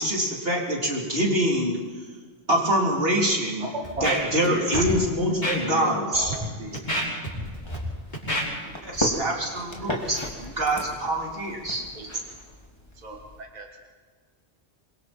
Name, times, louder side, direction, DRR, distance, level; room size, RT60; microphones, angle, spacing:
voice 1, 0.0-1.8 2.5-3.7 4.0-6.4 8.8-11.8, right 1 dB, 60° right, -2 dB, 4.0 m, -25 dB
voice 2, 3.6-4.8 5.3-7.2, right 1 dB, 85° right, 0 dB, 2.6 m, -33 dB
Scratching (performance technique), 3.8-4.5 4.7-4.9 5.4-5.6 6.1-6.3 6.7-7.8 8.1-8.4 8.9-9.1, equal, 40° left, 6.0 m, -28 dB
sound 1, 7.5-13.4, equal, 25° left, 2.6 m, -36 dB
voice 3, 9.8-10.2 11.9-12.1 12.9-13.7, right 3 dB, 40° right, 1 dB, 1.9 m, -44 dB
27.0 x 23.0 x 4.5 m, 1.5 s
omnidirectional pair, 1.1 m